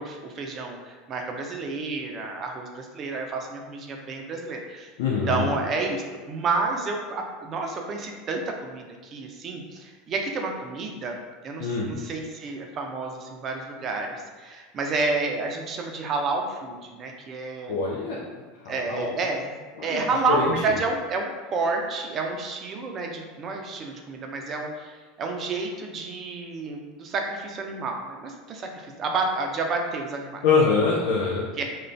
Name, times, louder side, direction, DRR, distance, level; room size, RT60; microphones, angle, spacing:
voice 1, 0.0-4.9 5.3-11.2 11.4-17.7 18.7-24.9 25.2-30.4 31.6-31.7, right 3 dB, 40° right, 2 dB, 0.5 m, -30 dB
voice 2, 5.0-5.5 11.6-11.9 17.7-18.2 18.6-19.1 19.8-20.0 20.3-20.5 30.4-31.5, left 4 dB, 65° left, -5 dB, 0.4 m, -24 dB
2.4 x 2.2 x 3.2 m, 1.4 s
hypercardioid pair, 80°, 0 cm